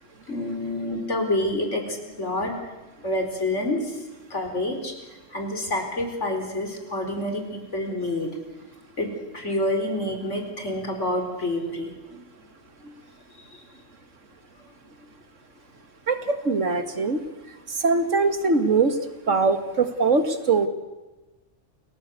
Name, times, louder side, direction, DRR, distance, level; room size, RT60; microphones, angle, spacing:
voice 1, 0.3-2.5 3.0-3.8 4.3-4.9 5.3-8.3 9.0-9.1 9.3-11.9, left 1 dB, 70° left, 5 dB, 4.8 m, -27 dB
voice 2, 16.5-17.2 17.8-18.9 19.3-20.7, right 4 dB, 75° right, 9 dB, 2.2 m, -21 dB
29.0 x 19.0 x 8.3 m, 1.2 s
omnidirectional pair, 1.3 m